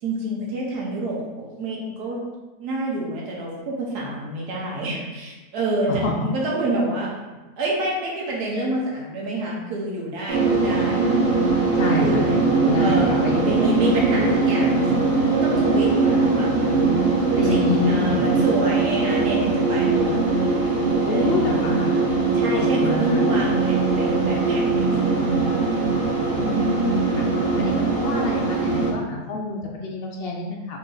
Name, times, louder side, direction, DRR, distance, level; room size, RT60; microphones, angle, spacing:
voice 1, 0.0-1.3 1.6-2.2 2.6-7.2 7.6-11.1 11.9-12.3 12.8-14.8 15.3-17.0 17.3-20.2 21.1-21.6 22.3-25.5, right 1 dB, 80° right, -3 dB, 1.5 m, -27 dB
sound 1, 10.3-28.9, right 3 dB, 30° right, 1.2 m, -21 dB
voice 2, 11.8-13.9 14.2-14.4 17.3-18.3 21.1-22.0 22.5-23.2 26.3-27.2 27.6-30.8, left 3 dB, 70° left, 0 dB, 0.5 m, -27 dB
4.0 x 3.1 x 3.8 m, 1.2 s
omnidirectional pair, 1.7 m